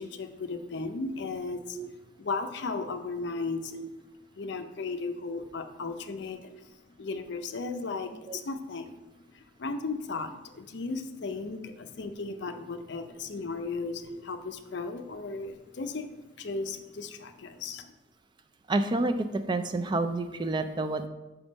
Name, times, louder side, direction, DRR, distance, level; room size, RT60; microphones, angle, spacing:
voice 1, 0.0-1.9 2.2-3.8 4.4-6.7 7.0-16.1 16.4-17.9, left 3 dB, 55° left, 7 dB, 0.5 m, -36 dB
voice 2, 18.7-21.1, right 2 dB, 20° right, 8 dB, 0.3 m, -29 dB
5.9 x 3.5 x 5.2 m, 1.1 s
head